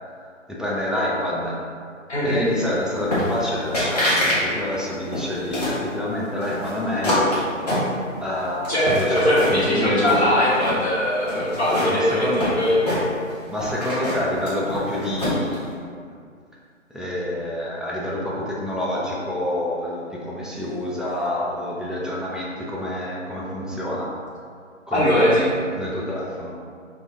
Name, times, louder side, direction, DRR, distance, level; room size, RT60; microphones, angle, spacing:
voice 1, 0.5-1.6 2.2-7.4 8.2-10.5 11.9-12.4 13.5-15.9 16.9-24.1 24.9-26.6, left 1 dB, ahead, -6 dB, 0.3 m, -28 dB
voice 2, 2.1-2.5 8.7-12.9 24.9-25.5, equal, 55° left, -8 dB, 1.5 m, -20 dB
sound 1, 3.1-3.5 3.7-4.4 4.7-5.8 6.4-8.3 8.7-9.7 10.0-10.8 11.3-13.3 13.6-15.6, left 1 dB, 30° left, 1.1 m, -25 dB
5.4 x 2.3 x 2.8 m, 2.2 s
figure-of-eight pair, 155°, 39 cm